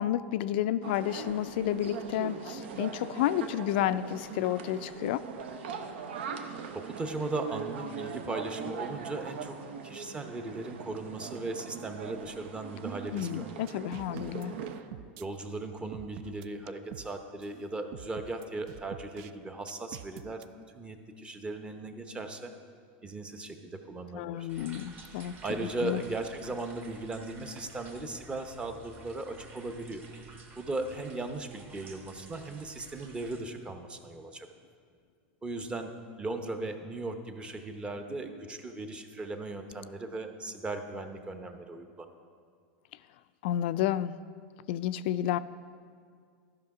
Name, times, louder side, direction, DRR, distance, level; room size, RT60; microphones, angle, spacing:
voice 1, 0.0-5.2 13.1-14.5 24.1-26.0 43.4-44.2 44.7-45.4, left 12 dB, 70° left, 15 dB, 0.3 m, -31 dB
sound 1, 0.8-14.8, right 6 dB, 80° right, 0.8 m, -41 dB
voice 2, 6.7-9.6 9.8-13.5 13.8-13.9 15.2-20.4 20.7-22.5 23.0-24.5 25.4-30.0 30.6-34.5 35.4-35.9 36.2-42.1, right 2 dB, 15° right, 7 dB, 0.8 m, -37 dB
sound 2, 13.2-13.3 13.7-15.3 15.9-17.1 17.4-17.5 17.9-19.3 19.7-20.5, right 12 dB, 60° right, 0.3 m, -46 dB
sound 3, 24.5-33.4, right 4 dB, 35° right, 1.3 m, -52 dB
12.5 x 5.8 x 4.8 m, 2.1 s
supercardioid pair, 115°, 6 cm